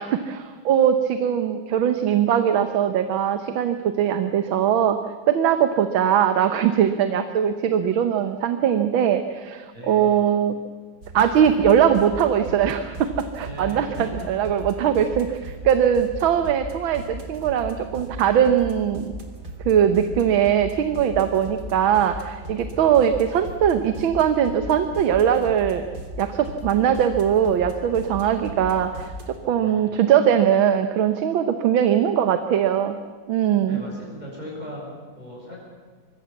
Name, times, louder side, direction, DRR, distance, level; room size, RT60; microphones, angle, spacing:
voice 1, 0.0-5.0 5.3-10.5 11.1-15.4 15.6-19.1 19.6-25.9 26.2-29.1 29.5-33.0 33.3-33.8, right 9 dB, 75° right, 8 dB, 1.8 m, -21 dB
voice 2, 9.7-10.2 13.4-14.3 22.7-23.0 29.6-29.9 33.6-35.6, left 1 dB, 20° right, -3 dB, 7.2 m, -38 dB
sound 1, 11.0-29.4, equal, 50° right, 3.4 m, -37 dB
25.5 x 22.0 x 7.2 m, 1.5 s
omnidirectional pair, 2.2 m